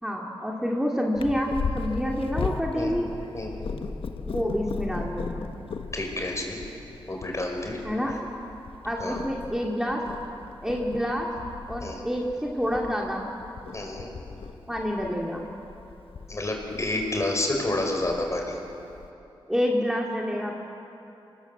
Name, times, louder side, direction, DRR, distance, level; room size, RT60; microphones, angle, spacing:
voice 1, 0.0-3.0 4.3-5.4 7.8-8.2 8.8-10.0 10.6-11.3 11.7-13.3 14.7-15.4 19.5-20.6, equal, 5° right, -1 dB, 2.5 m, -28 dB
Purr, 1.1-19.1, left 5 dB, 75° left, 1.2 m, -37 dB
voice 2, 2.7-3.8 5.9-6.6 7.1-7.8 9.0-9.2 11.8-12.0 13.7-14.1 16.3-18.6, left 2 dB, 35° left, 2 dB, 5.2 m, -30 dB
26.0 x 18.5 x 7.8 m, 2.9 s
cardioid pair, 60°, 9 cm